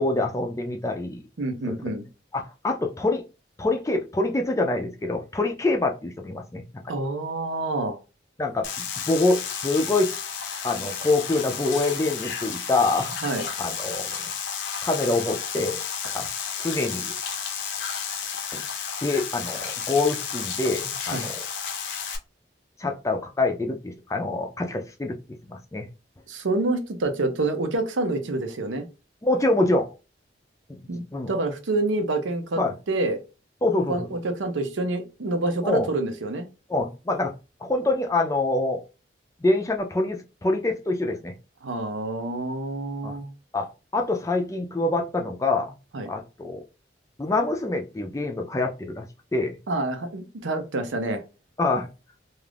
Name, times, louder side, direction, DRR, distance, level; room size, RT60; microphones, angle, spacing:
voice 1, 0.0-1.2 1.7-1.8 2.3-3.2 3.6-6.9 8.4-10.1 10.6-13.2 13.6-14.1 14.8-15.8 16.1-16.3 16.6-17.1 18.5-18.6 19.0-21.4 22.8-25.2 25.5-25.9 29.2-29.9 30.7-31.3 32.6-32.7 33.6-34.1 35.6-35.9 36.7-37.3 37.6-38.8 39.4-41.3 43.0-43.2 43.5-45.8 46.1-46.6 47.2-49.0 49.3-49.6 51.6-51.9, left 2 dB, 15° left, 0.4 m, -25 dB
voice 2, 1.4-2.1 6.9-8.0 13.2-13.5 21.1-21.3 26.3-28.9 30.9-32.6 32.9-33.2 33.9-36.5 41.6-43.3 45.9-46.1 49.7-51.2, right 2 dB, 90° right, 0.6 m, -27 dB
sound 1, 8.6-22.2, left 7 dB, 80° left, 0.6 m, -32 dB
2.5 x 2.4 x 3.3 m
head